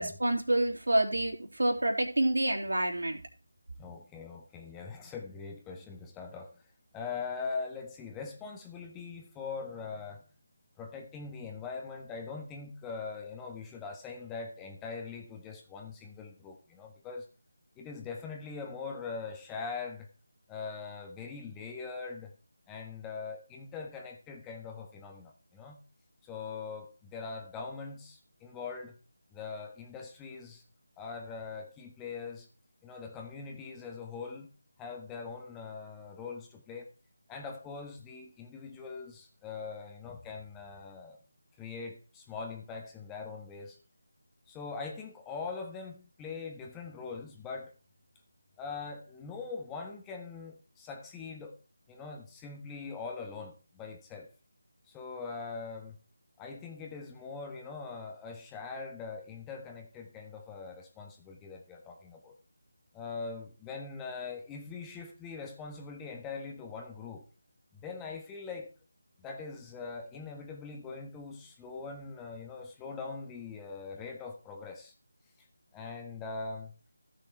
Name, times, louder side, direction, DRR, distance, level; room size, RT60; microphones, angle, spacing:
voice 1, 0.0-3.2, right 1 dB, 85° right, 3.6 m, -28 dB
voice 2, 3.8-6.5 6.9-10.2 10.8-17.2 17.8-20.1 20.5-22.3 22.7-25.8 26.2-29.0 29.3-30.6 31.0-32.5 32.8-34.5 34.8-36.9 37.3-41.2 41.6-43.8 44.5-47.7 48.6-51.6 51.9-54.3 54.9-56.0 56.4-62.3 62.9-67.2 67.7-68.7 69.2-74.9 75.7-76.8, left 4 dB, 10° left, 1.4 m, -42 dB
15.0 x 6.6 x 4.5 m
figure-of-eight pair, 170°, 0 cm